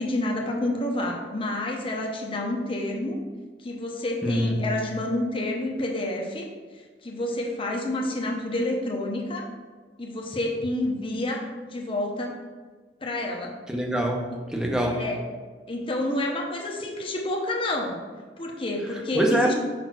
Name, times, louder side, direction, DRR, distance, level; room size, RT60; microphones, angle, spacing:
voice 1, 0.0-3.2 3.6-6.5 6.7-9.5 10.0-12.3 13.0-13.5 14.3-14.4 14.9-15.2 15.7-18.0 18.4-19.5, left 1 dB, 30° left, 0 dB, 0.9 m, -29 dB
voice 2, 4.2-4.7 13.7-15.0 19.1-19.5, equal, 5° right, 1 dB, 0.8 m, -24 dB
5.1 x 4.2 x 6.0 m, 1.4 s
head